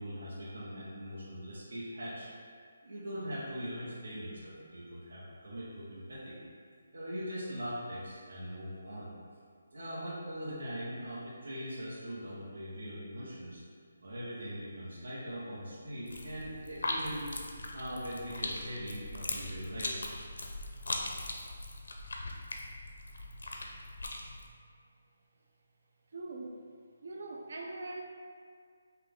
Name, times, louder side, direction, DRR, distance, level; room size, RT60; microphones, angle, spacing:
voice 1, 0.0-2.3 2.8-6.4 6.9-9.1 9.7-13.6 14.0-17.3 17.7-20.0, equal, 65° right, -8 dB, 1.1 m, -41 dB
sound 1, 16.1-24.5, left 2 dB, 75° left, 0.6 m, -40 dB
voice 2, 26.1-26.6 27.0-28.0, right 2 dB, 45° right, 0 dB, 0.4 m, -41 dB
5.8 x 2.3 x 3.6 m, 2.1 s
hypercardioid pair, 180°, 0 cm